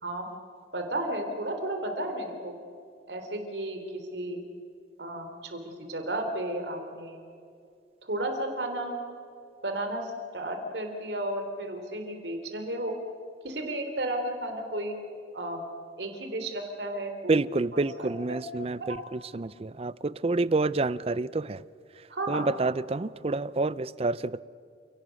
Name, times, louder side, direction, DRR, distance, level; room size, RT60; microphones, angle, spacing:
voice 1, 0.7-2.5 3.1-4.4 5.0-7.2 8.0-9.0 9.6-13.0 13.4-15.0 15.3-15.7 16.0-17.4 18.0-18.1 22.1-22.5, right 1 dB, 75° right, 3.8 m, -33 dB
voice 2, 17.3-21.6 22.0-24.4, right 3 dB, 35° right, 0.5 m, -28 dB
29.5 x 18.0 x 6.5 m
head